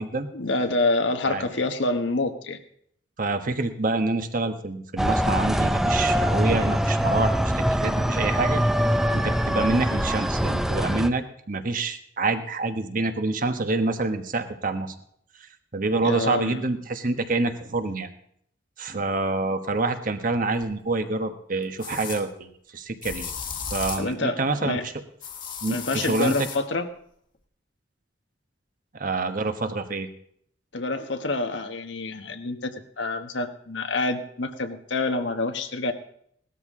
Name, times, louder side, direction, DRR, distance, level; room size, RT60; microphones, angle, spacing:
voice 1, 0.3-2.6 16.0-16.6 24.0-24.8 25.7-26.9 30.7-32.7 33.0-35.9, left 2 dB, 80° left, 7 dB, 1.3 m, -27 dB
voice 2, 3.2-8.6 9.1-14.9 15.7-18.1 18.8-23.3 23.7-24.9 25.6-26.5 28.9-30.1, right 3 dB, 45° right, 8 dB, 1.2 m, -27 dB
sound 1, 5.0-11.1, equal, ahead, 0.5 m, -23 dB
sound 2, 20.6-20.7 21.8-22.2 23.0-24.1 25.2-26.6, left 6 dB, 45° left, 1.6 m, -35 dB
18.0 x 13.0 x 3.7 m, 0.67 s
head